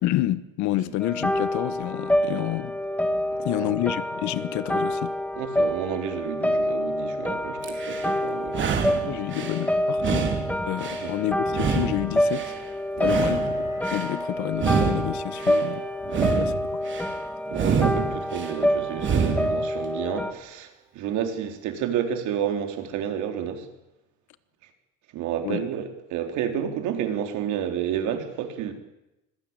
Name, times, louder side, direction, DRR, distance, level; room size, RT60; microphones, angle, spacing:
voice 1, 0.0-2.7 3.4-5.1 9.0-10.3 10.7-12.5 13.0-13.5 13.9-15.8 16.4-16.6 25.4-25.7, left 15 dB, 70° left, 16 dB, 1.3 m, -29 dB
sound 1, 1.0-20.3, equal, 5° left, 2.0 m, -27 dB
voice 2, 3.4-3.8 5.4-9.0 9.3-9.5 11.0-11.1 13.0-13.4 16.1-16.5 17.5-23.7 25.1-28.7, right 9 dB, 70° right, 6 dB, 4.0 m, -30 dB
sound 2, 7.6-8.1 8.5-9.6 10.0-11.1 11.5-12.6 13.0-14.1 14.5-15.6 16.0-17.1 17.5-18.5 18.9-19.6, right 6 dB, 40° right, 3.7 m, -27 dB
Piano, 13.1-20.2 20.5-20.7, right 2 dB, 10° right, 3.5 m, -47 dB
24.5 x 17.0 x 9.1 m, 0.92 s
cardioid pair, 140°, 30 cm